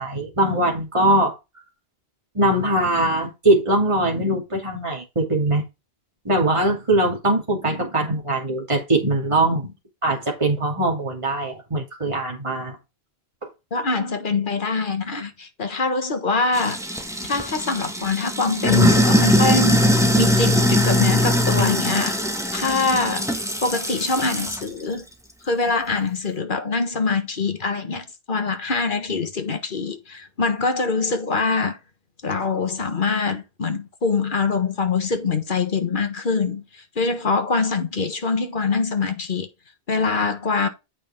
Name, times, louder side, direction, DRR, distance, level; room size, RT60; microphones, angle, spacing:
voice 1, 0.0-1.3 2.3-5.6 6.2-9.7 10.0-12.8 13.4-13.5, right 1 dB, 30° right, 2.8 m, -21 dB
voice 2, 13.7-16.8 17.3-19.9 20.1-22.2 22.5-23.3 23.6-25.0 25.4-31.8 32.2-39.5 39.9-40.7, left 4 dB, 55° left, 1.6 m, -24 dB
Sink (filling or washing), 16.5-24.7, equal, 5° right, 1.7 m, -21 dB
8.4 x 5.8 x 3.6 m
omnidirectional pair, 1.1 m